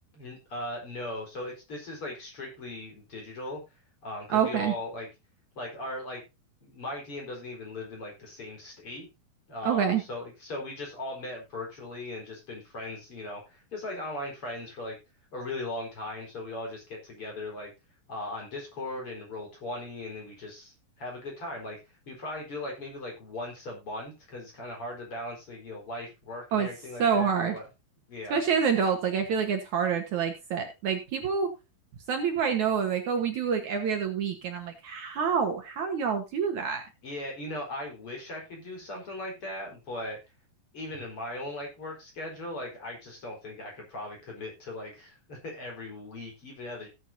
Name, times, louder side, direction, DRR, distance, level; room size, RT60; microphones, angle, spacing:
voice 1, 0.1-3.6 4.0-5.1 5.6-6.2 6.6-9.1 9.5-15.0 15.3-17.7 18.1-21.8 22.1-27.6 28.1-28.4 37.0-40.2 40.7-46.9, left 1 dB, 35° left, 0 dB, 5.2 m, -38 dB
voice 2, 4.3-4.7 9.6-10.0 26.5-26.7 27.0-27.6 28.3-31.5 32.1-36.8, right 7 dB, 60° right, 5 dB, 2.5 m, -27 dB
17.5 x 8.5 x 2.8 m, 0.26 s
omnidirectional pair, 4.2 m